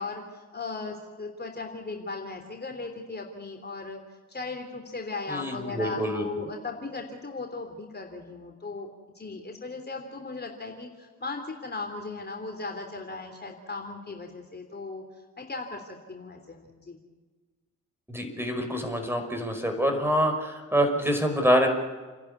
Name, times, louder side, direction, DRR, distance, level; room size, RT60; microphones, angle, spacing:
voice 1, 0.0-4.0 4.3-8.9 9.1-15.0 15.4-17.0, left 3 dB, 30° left, 3 dB, 3.4 m, -37 dB
voice 2, 5.3-6.5 18.1-21.7, equal, 5° right, 5 dB, 5.2 m, -26 dB
30.0 x 11.0 x 9.7 m, 1.4 s
supercardioid pair, 60°, 35 cm